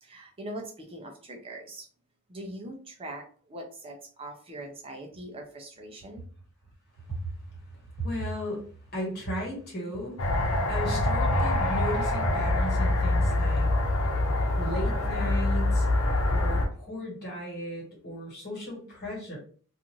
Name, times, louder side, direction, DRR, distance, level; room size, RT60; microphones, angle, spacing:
voice 1, 0.0-1.9 2.3-6.2, right 1 dB, 25° right, 1 dB, 0.5 m, -42 dB
voice 2, 7.0-13.7 14.5-15.9 16.3-19.4, equal, 50° left, -2 dB, 1.4 m, -36 dB
sound 1, 10.2-16.7, left 1 dB, 85° left, 0.8 m, -25 dB
2.5 x 2.5 x 3.0 m, 0.43 s
head